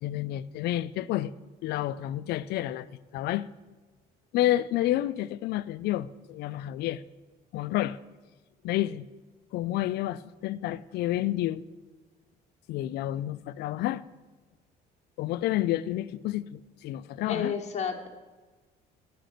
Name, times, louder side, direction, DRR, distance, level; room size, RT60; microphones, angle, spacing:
voice 1, 0.0-1.3 1.6-2.9 3.1-3.5 4.3-7.0 7.5-8.0 8.6-9.1 9.5-11.6 12.7-14.0 15.2-17.5, left 14 dB, 75° left, 0.4 m, -29 dB
voice 2, 17.3-18.1, left 6 dB, 40° left, 1.3 m, -31 dB
10.0 x 5.1 x 6.5 m
cardioid pair, 110°, 17 cm